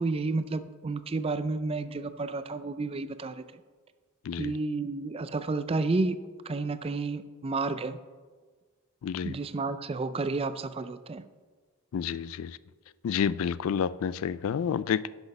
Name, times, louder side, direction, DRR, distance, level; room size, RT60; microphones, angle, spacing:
voice 1, 0.0-3.4 4.4-6.2 6.4-8.0 9.2-11.2, right 3 dB, 25° right, 12 dB, 0.4 m, -31 dB
voice 2, 9.0-9.3 11.9-12.6 13.0-15.1, left 7 dB, 65° left, 17 dB, 0.3 m, -29 dB
11.0 x 6.1 x 5.3 m, 1.4 s
head